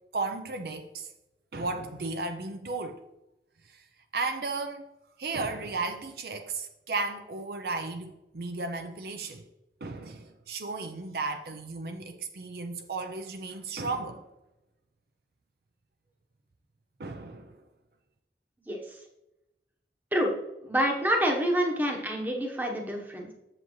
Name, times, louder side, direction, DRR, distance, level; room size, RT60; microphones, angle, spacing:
voice 1, 0.1-1.1 1.5-3.0 3.7-3.8 4.1-4.9 5.2-9.4 9.8-14.2 17.0-17.6, right 3 dB, 60° right, 0.6 m, -34 dB
voice 2, 20.6-23.3, equal, 10° right, 1.0 m, -27 dB
7.7 x 7.1 x 3.1 m
head